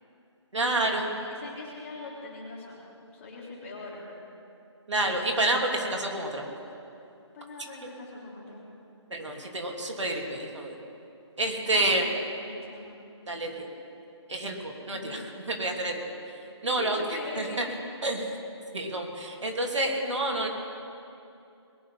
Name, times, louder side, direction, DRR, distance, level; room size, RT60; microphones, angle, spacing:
voice 1, 0.5-1.1 4.9-6.4 9.1-10.8 11.4-12.0 13.3-13.7 14.3-15.9 16.6-17.0 17.4-17.6 18.0-18.2 18.7-20.5, right 2 dB, 75° right, 1 dB, 2.9 m, -28 dB
voice 2, 1.2-2.9 3.1-4.0 7.3-8.6 11.7-12.0 12.4-13.0 14.9-15.3 16.6-17.8, left 2 dB, 25° left, -4 dB, 3.4 m, -41 dB
21.0 x 9.5 x 5.6 m, 2.6 s
figure-of-eight pair, 165°, 15 cm